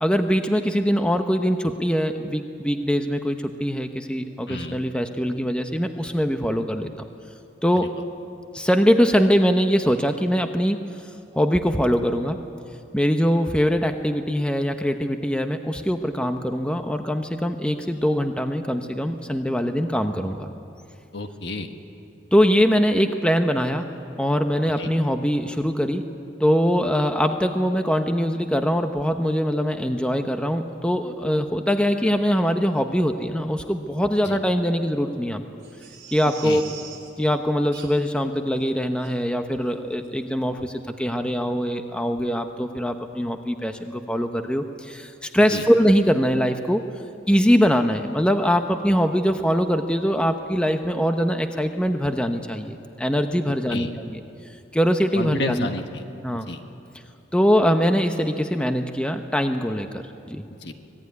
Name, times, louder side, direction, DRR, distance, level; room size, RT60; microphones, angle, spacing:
voice 1, 0.0-6.9 7.6-7.9 8.5-10.9 11.3-12.4 12.9-20.5 22.3-23.9 24.2-26.1 26.4-35.4 36.1-36.6 37.2-46.8 47.3-54.2 54.7-55.7 56.2-56.5 57.3-60.4, equal, 5° left, 6 dB, 0.8 m, -22 dB
voice 2, 4.5-4.8 7.8-7.9 21.1-21.7 24.8-24.9 34.2-34.4 36.4-36.6 45.5-45.6 53.7-53.9 55.1-56.0 56.5-56.6 60.6-60.7, left 2 dB, 65° left, 6 dB, 1.4 m, -30 dB
Crying sobbing, 35.6-37.1 37.7-38.2 38.6-38.7 39.0-39.1 39.6-39.8 40.0-40.1, right 7 dB, 60° right, 4.4 m, -43 dB
25.0 x 19.0 x 9.5 m, 2.6 s
head